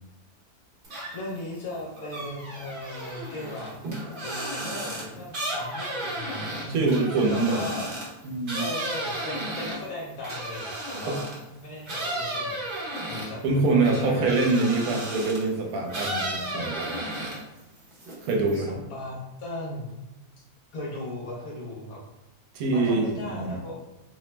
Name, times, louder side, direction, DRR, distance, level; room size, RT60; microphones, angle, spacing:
sound 1, 0.8-1.4 1.7-11.4 11.9-15.5 15.9-17.6 17.9-18.5, right 1 dB, 45° right, 0.7 m, -34 dB
voice 1, 1.1-3.7 4.2-7.9 8.5-11.2 11.6-12.6 13.1-13.4 13.7-14.3 18.5-19.9 20.7-22.0 22.6-23.8, left 1 dB, 70° left, -5 dB, 1.2 m, -37 dB
voice 2, 6.7-7.7 8.2-8.7 11.1-11.2 13.4-17.0 18.2-18.8 22.5-23.5, right 3 dB, 75° right, 1 dB, 1.1 m, -25 dB
2.8 x 2.0 x 3.1 m, 0.96 s
omnidirectional pair, 1.6 m